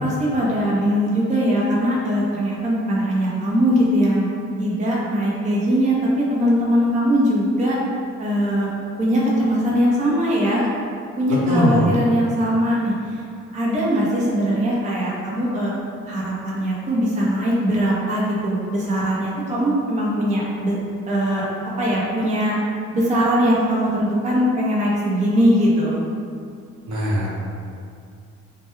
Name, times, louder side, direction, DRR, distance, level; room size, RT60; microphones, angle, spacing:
voice 1, 0.0-4.3 4.6-7.8 8.2-8.7 9.0-10.7 11.2-12.9 13.5-15.7 16.1-20.7 21.1-21.4 21.8-22.5 22.9-26.0, equal, 25° right, -5 dB, 0.5 m, -20 dB
voice 2, 11.5-11.9 26.9-27.3, right 1 dB, 70° right, -7 dB, 0.8 m, -20 dB
2.2 x 2.2 x 2.9 m, 2.3 s
cardioid pair, 90°, 30 cm